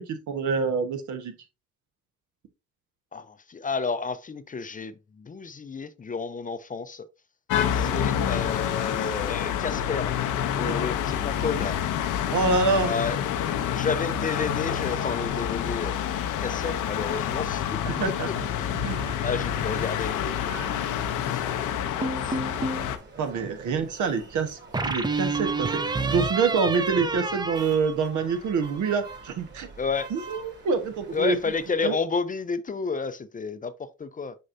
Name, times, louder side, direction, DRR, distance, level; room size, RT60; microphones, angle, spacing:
voice 1, 0.0-1.3 10.6-10.7 12.3-12.9 17.8-18.3 18.7-19.0 23.2-29.7 30.1-31.4 31.8-31.9, right 4 dB, 75° right, 1.3 m, -26 dB
voice 2, 3.1-7.0 7.7-10.1 10.6-11.8 12.8-13.2 13.6-16.0 16.4-17.6 18.6-18.7 19.2-20.3 21.3-22.9 29.8-30.1 31.1-34.4, left 4 dB, 25° left, 0.5 m, -31 dB
sound 1, 7.5-23.0, left 9 dB, 85° left, 0.8 m, -28 dB
sound 2, 18.8-31.8, right 3 dB, 35° right, 2.4 m, -47 dB
sound 3, 22.0-22.9 24.7-28.5, right 3 dB, 15° right, 0.6 m, -29 dB
6.5 x 5.5 x 2.6 m
cardioid pair, 90°, 30 cm